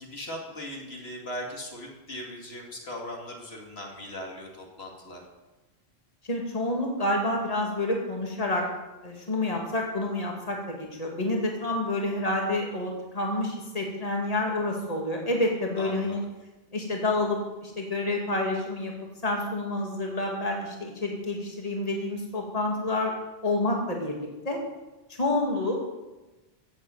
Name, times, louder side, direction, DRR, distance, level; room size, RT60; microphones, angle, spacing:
voice 1, 0.0-5.2 15.8-16.2, left 1 dB, 75° left, 0 dB, 2.9 m, -39 dB
voice 2, 6.3-8.6 9.0-16.2 16.7-18.9 19.2-23.1 23.4-24.6 25.2-25.9, left 2 dB, 35° left, 0 dB, 2.5 m, -28 dB
16.0 x 8.0 x 7.9 m, 1.1 s
omnidirectional pair, 1.1 m